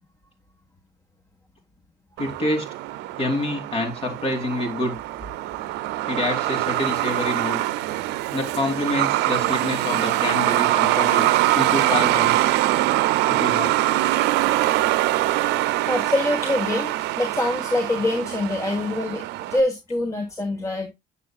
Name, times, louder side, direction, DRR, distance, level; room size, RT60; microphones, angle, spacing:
voice 1, 2.2-2.7 3.2-5.0 6.1-7.6 8.3-11.3 11.5-12.5 13.3-13.7, left 1 dB, 35° left, 3.1 m, -27 dB
Truck, 2.2-19.6, right 16 dB, 90° right, 0.6 m, -23 dB
voice 2, 15.9-16.9 17.2-19.2 19.5-20.9, left 2 dB, 20° left, 1.4 m, -24 dB
9.4 x 7.0 x 2.3 m
cardioid pair, 110°, 17 cm